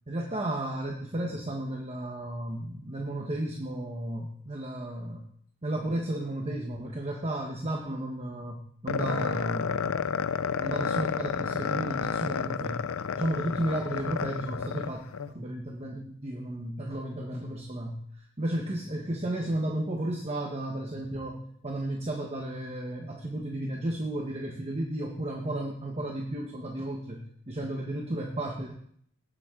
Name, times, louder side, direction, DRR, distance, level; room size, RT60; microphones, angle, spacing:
voice 1, 0.1-5.2 5.6-10.2 10.6-12.8 13.1-18.0 18.4-28.7, right 1 dB, 30° right, 0 dB, 1.1 m, -33 dB
sound 1, 8.9-15.3, left 6 dB, 70° left, 0.5 m, -31 dB
18.5 x 7.3 x 3.8 m, 0.65 s
head